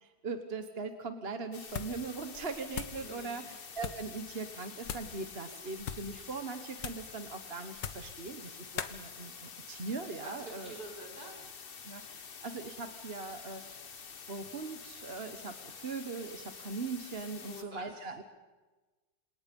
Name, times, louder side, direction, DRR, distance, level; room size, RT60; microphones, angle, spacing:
voice 1, 0.0-10.7 11.8-13.8 14.3-18.2, right 4 dB, 35° right, 7 dB, 1.3 m, -40 dB
sound 1, 1.5-17.6, left 6 dB, 40° left, 1.0 m, -48 dB
sound 2, 1.7-2.1 2.3-3.0 3.8-4.1 4.8-5.2 5.8-6.1 6.8-7.1 7.7-8.2 8.8-9.0, left 8 dB, 80° left, 1.9 m, -40 dB
voice 2, 3.0-3.5 10.2-11.4 17.5-18.2, right 1 dB, 55° right, 0 dB, 6.0 m, -48 dB
27.5 x 27.5 x 5.4 m, 1.2 s
omnidirectional pair, 2.0 m